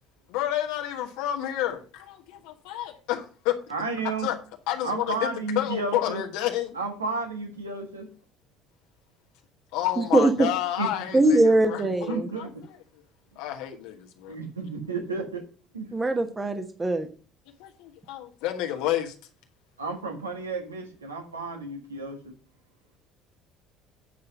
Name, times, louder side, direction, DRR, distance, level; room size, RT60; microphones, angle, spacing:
voice 1, 0.3-3.5 4.2-4.4 4.7-5.3 5.5-6.8 9.7-12.5 13.4-14.3 17.6-19.1, left 12 dB, 65° left, 1.2 m, -30 dB
voice 2, 3.7-4.3 4.8-6.2 6.7-8.1 10.8-10.9 11.4-11.5 12.1-12.6 14.3-15.4 15.7-15.9 19.8-22.3, right 3 dB, 85° right, 1.6 m, -32 dB
voice 3, 10.0-10.5 11.1-12.3 15.9-17.1, right 2 dB, 20° right, 1.2 m, -22 dB
8.6 x 5.5 x 5.3 m
figure-of-eight pair, 55°, 0 cm